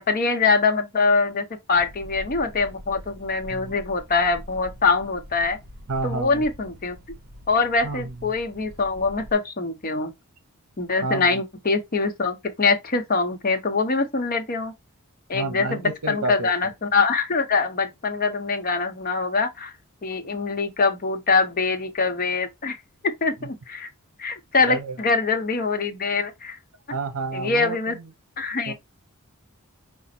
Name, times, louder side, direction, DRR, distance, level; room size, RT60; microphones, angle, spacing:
voice 1, 0.0-5.6 6.0-7.0 7.5-10.1 10.8-14.7 15.3-19.7 20.0-22.8 23.0-23.9 24.2-26.6 27.3-28.0 28.4-28.7, left 4 dB, 40° left, 0.8 m, -24 dB
sound 1, 1.7-9.3, equal, 50° right, 0.8 m, -44 dB
voice 2, 3.5-3.8 5.9-6.4 7.8-8.1 11.0-11.4 15.3-16.5 23.4-23.5 24.6-25.0 26.9-28.1 28.7-28.8, right 3 dB, 75° right, 0.7 m, -30 dB
5.0 x 2.0 x 4.2 m
head